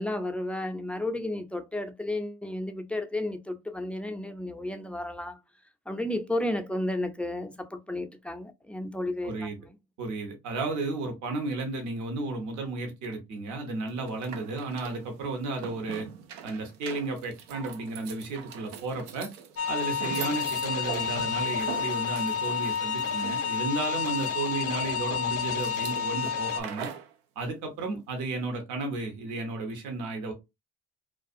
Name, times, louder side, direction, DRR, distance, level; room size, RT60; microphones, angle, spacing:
voice 1, 0.0-5.4 5.9-9.7, left 1 dB, 5° left, 0.4 m, -32 dB
voice 2, 9.2-9.6 10.0-16.1 16.4-19.3 19.7-26.9 27.4-30.3, right 3 dB, 65° right, 1.0 m, -33 dB
sound 1, 13.9-27.1, right 8 dB, 90° right, 0.5 m, -43 dB
sound 2, 19.6-26.6, left 7 dB, 50° left, 0.6 m, -30 dB
2.4 x 2.3 x 2.6 m
supercardioid pair, 75°, 31 cm